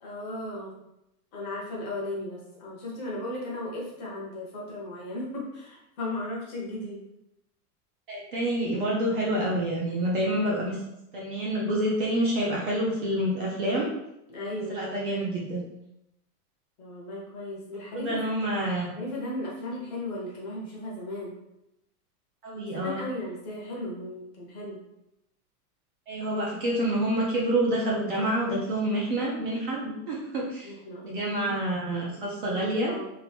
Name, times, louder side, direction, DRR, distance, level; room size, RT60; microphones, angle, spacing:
voice 1, 0.0-0.7 1.3-7.0 14.3-14.8 16.8-18.2 18.9-21.3 22.6-24.8 30.6-32.0 32.5-32.6 32.9-33.1, left 1 dB, 30° left, -4 dB, 0.6 m, -36 dB
voice 2, 8.1-10.8 11.1-13.9 14.7-15.6 17.9-18.9 22.4-23.0 26.1-30.7 31.0-32.9, right 1 dB, 35° right, -4 dB, 0.4 m, -27 dB
2.8 x 2.5 x 3.2 m, 0.85 s
supercardioid pair, 165°, 47 cm